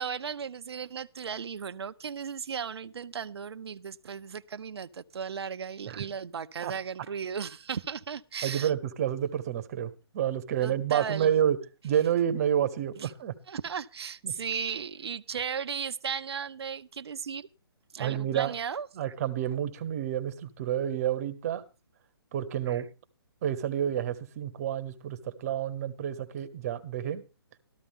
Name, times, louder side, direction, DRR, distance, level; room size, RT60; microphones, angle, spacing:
voice 1, 0.0-8.7 10.6-11.3 13.0-13.1 13.5-17.5 17.9-19.1 22.7-22.8, right 7 dB, 75° right, 0.7 m, -36 dB
voice 2, 8.4-11.6 11.8-13.3 14.2-14.3 18.0-18.5 19.0-21.6 22.3-22.9 23.4-27.2, right 10 dB, 35° right, 1.2 m, -29 dB
13.5 x 13.5 x 3.6 m
hypercardioid pair, 155°, 14 cm